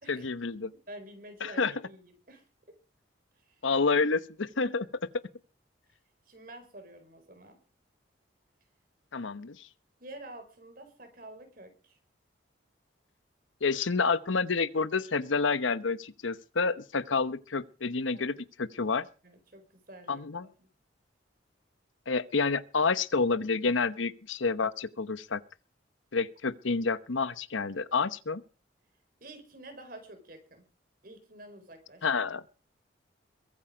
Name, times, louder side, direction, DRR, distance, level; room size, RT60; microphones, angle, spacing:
voice 1, 0.1-0.7 1.4-1.7 3.6-4.9 9.1-9.7 13.6-19.1 20.1-20.5 22.1-25.4 26.1-28.4 32.0-32.4, left 4 dB, 80° left, 0.9 m, -29 dB
voice 2, 0.7-2.8 3.3-3.6 6.2-7.6 10.0-12.0 18.1-18.3 19.2-20.7 29.2-30.6 31.0-32.1, right 1 dB, 45° right, 4.6 m, -49 dB
22.5 x 9.1 x 5.1 m
head